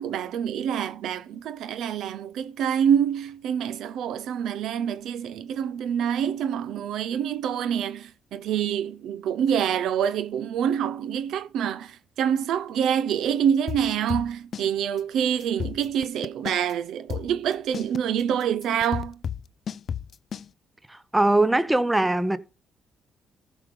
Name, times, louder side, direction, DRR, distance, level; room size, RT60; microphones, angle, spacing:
voice 1, 0.0-19.2, right 8 dB, 80° right, 0.7 m, -26 dB
sound 1, 13.7-14.7 15.0-15.1 15.4-16.7 17.1-20.5, left 8 dB, 55° left, 0.4 m, -32 dB
voice 2, 20.9-22.4, right 2 dB, 10° right, 0.8 m, -21 dB
14.5 x 5.0 x 5.3 m
cardioid pair, 90°, 0 cm